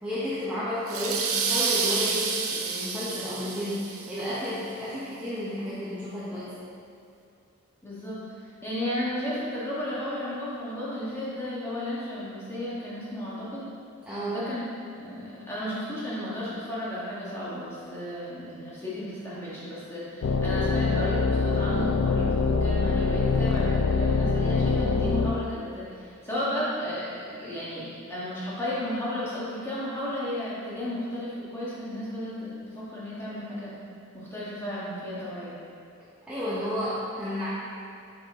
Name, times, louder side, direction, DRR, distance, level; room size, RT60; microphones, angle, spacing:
voice 1, 0.0-6.7 14.1-14.4 36.3-37.5, equal, 5° right, -11 dB, 0.8 m, -32 dB
sound 1, 0.9-4.3, right 5 dB, 75° right, 0.7 m, -29 dB
voice 2, 7.8-13.7 14.3-14.6 15.0-33.8 34.1-35.6, left 1 dB, 10° left, -9 dB, 1.4 m, -33 dB
sound 2, 20.2-25.3, left 4 dB, 65° left, 0.4 m, -24 dB
6.0 x 5.3 x 3.5 m, 2.6 s
head